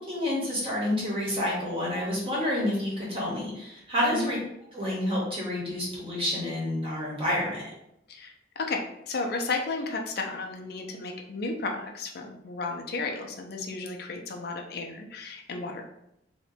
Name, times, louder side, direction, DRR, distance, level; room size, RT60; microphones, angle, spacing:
voice 1, 0.0-4.4 4.7-7.7, left 1 dB, 30° right, -5 dB, 0.9 m, -29 dB
voice 2, 8.1-15.8, left 3 dB, 60° left, 2 dB, 0.5 m, -33 dB
2.7 x 2.2 x 4.1 m, 0.79 s
head